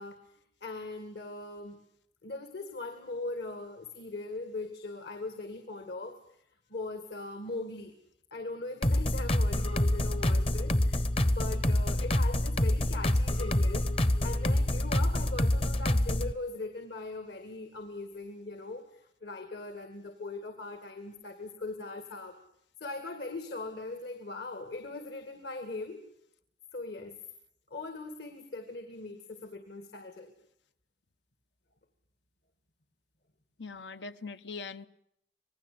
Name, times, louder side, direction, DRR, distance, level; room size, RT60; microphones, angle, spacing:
voice 1, 0.0-1.8 2.2-6.2 6.7-7.9 8.3-22.3 22.8-26.0 26.7-27.2 27.7-30.3, left 2 dB, 70° left, 9 dB, 2.4 m, -40 dB
sound 1, 8.8-16.3, left 1 dB, 35° left, 0.9 m, -27 dB
voice 2, 33.6-34.9, left 4 dB, 85° left, 12 dB, 1.1 m, -41 dB
26.0 x 19.5 x 8.7 m, 0.74 s
head